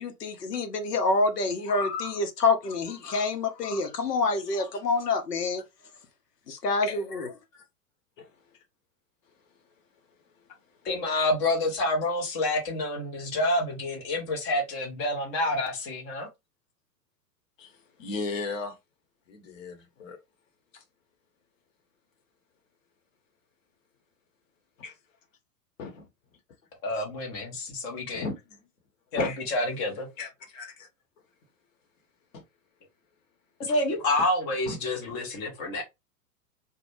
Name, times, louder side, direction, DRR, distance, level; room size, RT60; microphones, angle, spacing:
voice 1, 0.0-5.6 6.5-7.3, left 3 dB, 80° left, 0.7 m, -27 dB
voice 2, 8.2-8.6 10.4-10.5 17.6-18.8 19.3-20.2 20.7-20.8 24.8-25.0 25.8-26.1 26.9-27.0 28.1-28.6 29.1-29.4 30.2-30.9 32.3-32.4 34.7-34.8, left 3 dB, 55° left, 1.0 m, -36 dB
voice 3, 10.8-16.3 26.8-28.3 29.1-30.1 33.6-35.8, left 1 dB, 20° left, 0.4 m, -28 dB
2.1 x 2.1 x 3.0 m
figure-of-eight pair, 100°, 47 cm